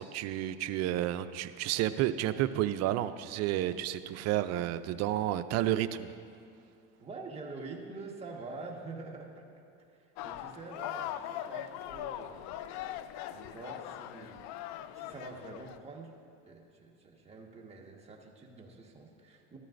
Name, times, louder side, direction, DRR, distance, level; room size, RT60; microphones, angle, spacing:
voice 1, 0.0-6.1, right 13 dB, 55° right, 12 dB, 0.5 m, -31 dB
voice 2, 7.0-9.5 10.0-12.4 13.3-14.4 14.9-16.1 16.5-19.6, right 3 dB, 20° right, -1 dB, 1.5 m, -46 dB
sound 1, 10.2-15.8, left 12 dB, 65° left, 0.5 m, -41 dB
14.0 x 12.5 x 2.6 m, 2.5 s
supercardioid pair, 105°, 31 cm